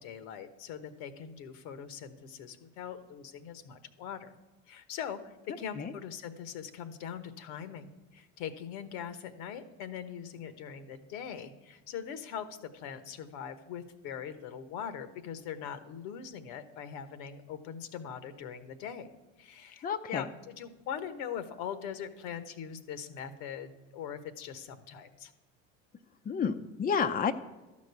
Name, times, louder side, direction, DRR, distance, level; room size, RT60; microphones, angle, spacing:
voice 1, 0.0-4.3 4.7-19.1 19.4-25.3, left 8 dB, 70° left, 12 dB, 1.2 m, -41 dB
voice 2, 19.8-20.3 26.2-27.3, left 6 dB, 25° left, 8 dB, 0.6 m, -30 dB
12.5 x 5.2 x 8.1 m, 1.1 s
hypercardioid pair, 85°, 38 cm